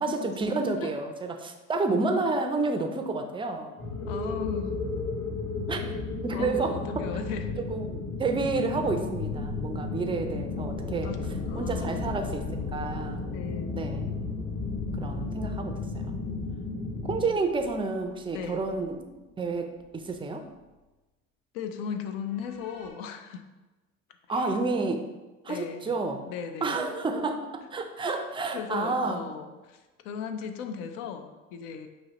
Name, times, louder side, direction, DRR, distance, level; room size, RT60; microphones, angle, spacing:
voice 1, 0.0-3.7 5.7-5.9 6.2-7.1 7.6-11.1 11.5-13.3 13.7-14.1 14.9-16.2 17.1-19.0 19.4-20.5 24.3-25.1 25.4-26.2 26.6-29.2, right 3 dB, 15° right, 5 dB, 0.4 m, -30 dB
sound 1, 3.8-17.2, left 3 dB, 35° left, 1.1 m, -33 dB
voice 2, 4.1-4.8 6.3-7.5 11.0-12.0 13.3-13.8 18.3-18.6 21.5-23.5 24.3-24.5 25.5-26.0 26.3-26.8 28.5-31.9, left 7 dB, 70° left, 7 dB, 0.6 m, -37 dB
sound 2, 4.1-6.9 8.8-20.3 20.5-20.6 22.3-22.9, left 2 dB, 50° left, 1.3 m, -44 dB
5.4 x 2.9 x 2.9 m, 1.1 s
hypercardioid pair, 75°, 40 cm